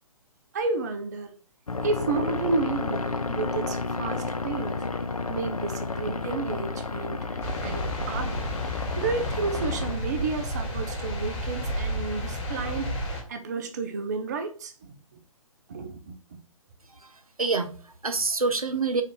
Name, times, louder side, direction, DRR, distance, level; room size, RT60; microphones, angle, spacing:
voice 1, 0.5-1.3 1.8-4.8 5.3-8.4 9.0-13.0 13.3-15.0 15.7-16.4, right 4 dB, 30° right, 0.4 m, -31 dB
sound 1, 1.7-9.9, left 3 dB, 75° left, 0.5 m, -31 dB
sound 2, 7.4-13.2, equal, 50° left, 1.4 m, -31 dB
voice 2, 16.8-19.0, right 4 dB, 80° right, 0.6 m, -27 dB
4.2 x 2.4 x 3.7 m
figure-of-eight pair, 135°, 18 cm